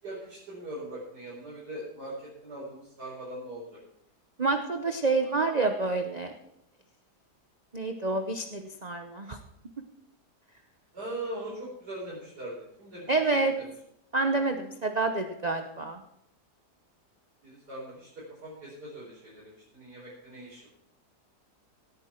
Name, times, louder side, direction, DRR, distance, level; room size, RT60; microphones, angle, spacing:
voice 1, 0.0-3.8 5.0-5.3 10.9-13.7 17.4-20.7, right 1 dB, 75° right, -6 dB, 5.0 m, -41 dB
voice 2, 4.4-6.3 7.7-9.4 13.1-13.5 14.1-16.0, right 3 dB, 35° right, 5 dB, 0.7 m, -28 dB
18.0 x 8.9 x 4.4 m, 0.75 s
omnidirectional pair, 1.8 m